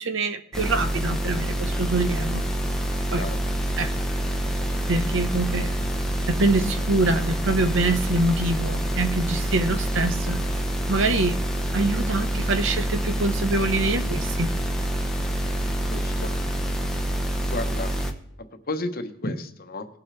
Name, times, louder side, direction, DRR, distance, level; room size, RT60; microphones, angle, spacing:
voice 1, 0.0-2.4 3.1-3.3 3.8-3.9 4.9-5.7 6.3-10.4 10.9-11.4 11.7-14.6, right 2 dB, 60° right, 9 dB, 1.0 m, -25 dB
sound 1, 0.5-18.1, right 1 dB, ahead, 1.0 m, -26 dB
voice 2, 15.9-16.3 17.5-17.9 18.7-19.9, left 2 dB, 45° left, 7 dB, 1.1 m, -32 dB
19.5 x 7.5 x 3.4 m, 0.76 s
head